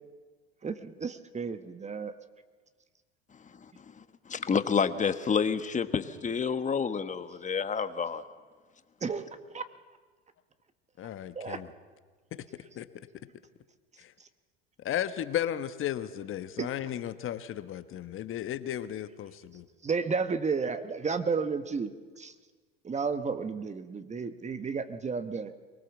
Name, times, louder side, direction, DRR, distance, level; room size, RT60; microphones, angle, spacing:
voice 1, 0.6-2.1 9.0-9.6 11.3-11.6 16.6-16.7 19.8-21.9 22.2-22.3 22.8-25.5, right 5 dB, 25° right, 10 dB, 1.2 m, -32 dB
voice 2, 4.0-8.2, left 6 dB, 25° left, 10 dB, 1.4 m, -29 dB
voice 3, 11.0-11.7 12.8-12.9 14.0-14.1 14.8-19.6, left 11 dB, 45° left, 12 dB, 1.3 m, -34 dB
23.5 x 19.0 x 7.2 m, 1.4 s
hypercardioid pair, 90°, 30 cm